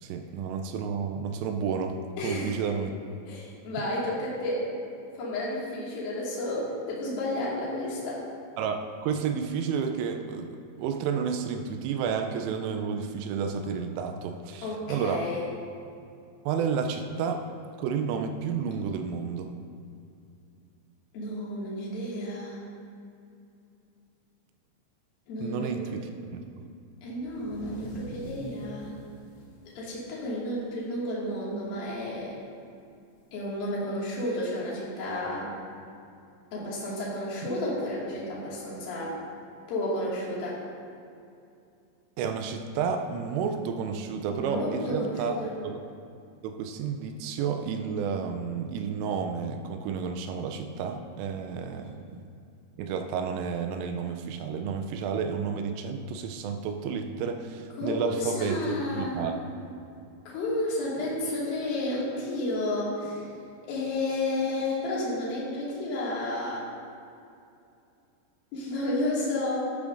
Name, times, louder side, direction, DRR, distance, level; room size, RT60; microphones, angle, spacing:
voice 1, 0.0-2.9 8.6-15.3 16.5-17.5 17.8-19.5 25.4-26.7 42.2-45.8 46.4-52.2 52.8-59.3, right 6 dB, 85° right, 5 dB, 3.1 m, -31 dB
voice 2, 2.2-2.5 3.3-4.6 5.2-8.2 14.6-15.4 21.1-22.6 25.3-26.0 27.0-28.9 29.8-32.3 33.3-35.5 36.5-39.2 39.7-40.6 44.4-45.5 57.8-59.3 60.3-63.2 63.7-66.6 68.5-69.6, left 1 dB, 55° left, -6 dB, 3.4 m, -31 dB
sound 1, 27.2-30.9 31.2-31.4 31.8-32.2 33.3-33.4 34.5-34.6, equal, 70° left, 3.8 m, -45 dB
11.5 x 11.5 x 2.6 m, 2.5 s
omnidirectional pair, 5.8 m